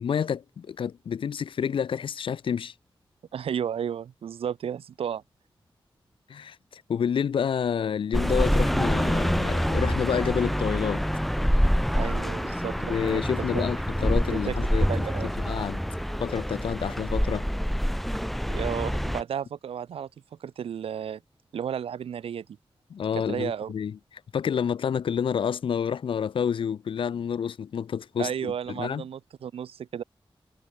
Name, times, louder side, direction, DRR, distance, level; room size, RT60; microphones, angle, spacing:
voice 1, 0.0-2.7 6.3-11.0 12.9-14.9 15.4-15.8 16.2-17.5 22.9-24.0 24.3-29.0, left 7 dB, 65° left, 0.3 m, -29 dB
voice 2, 3.3-5.2 11.9-13.2 13.5-13.7 14.3-14.6 14.9-15.3 18.5-20.1 20.4-21.2 21.5-22.5 23.2-23.7 28.2-30.0, right 8 dB, 85° right, 0.5 m, -33 dB
sound 1, 8.1-19.2, equal, ahead, 0.5 m, -26 dB
cardioid pair, 55°, 9 cm